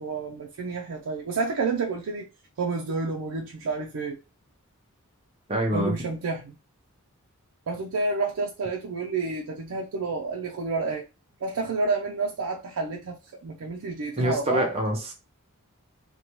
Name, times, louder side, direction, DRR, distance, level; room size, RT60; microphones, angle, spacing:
voice 1, 0.0-2.3 2.6-4.2 5.7-6.6 7.7-11.1 11.4-14.7, right 4 dB, 80° right, 0.4 m, -29 dB
voice 2, 5.5-5.9 14.2-15.1, equal, 25° right, 0.6 m, -25 dB
2.7 x 2.2 x 3.0 m
head